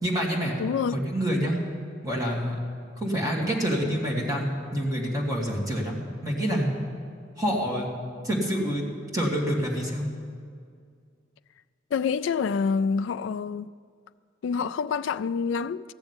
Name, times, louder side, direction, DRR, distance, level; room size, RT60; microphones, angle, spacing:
voice 1, 0.0-0.6 0.9-1.6 2.0-2.6 3.0-6.7 7.4-7.9 8.2-8.8 9.1-10.1, equal, 20° right, 2.4 m, -27 dB
voice 2, 0.6-1.0 11.9-13.7 14.4-15.9, left 5 dB, 70° left, 0.3 m, -27 dB
15.0 x 7.0 x 9.8 m
head